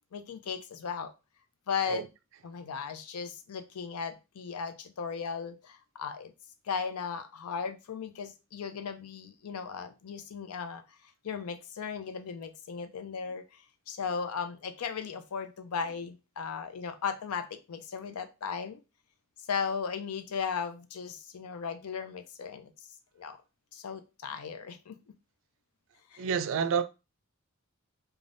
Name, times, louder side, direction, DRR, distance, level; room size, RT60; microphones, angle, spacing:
voice 1, 0.1-1.1 1.7-2.1 2.4-6.3 6.6-10.8 11.2-18.8 19.5-22.7 23.2-23.4 23.7-25.0 26.1-26.2, left 6 dB, 85° left, 0.4 m, -36 dB
voice 2, 26.2-26.8, right 6 dB, 60° right, 0.3 m, -29 dB
3.3 x 2.3 x 2.5 m
head